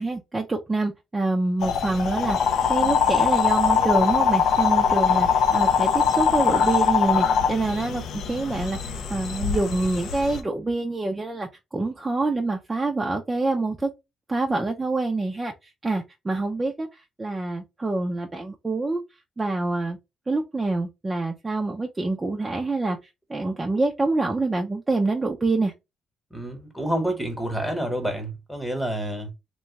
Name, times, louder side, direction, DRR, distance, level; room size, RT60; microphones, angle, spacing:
voice 1, 0.0-2.4 2.7-13.9 14.3-15.5 15.8-16.9 17.2-19.0 19.4-20.0 20.3-23.0 23.3-25.7, right 2 dB, 20° right, 0.5 m, -26 dB
sound 1, 1.6-10.4, left 7 dB, 75° left, 0.6 m, -22 dB
voice 2, 26.3-29.3, right 1 dB, 5° left, 1.2 m, -28 dB
3.0 x 2.2 x 2.9 m
cardioid pair, 90°, 0 cm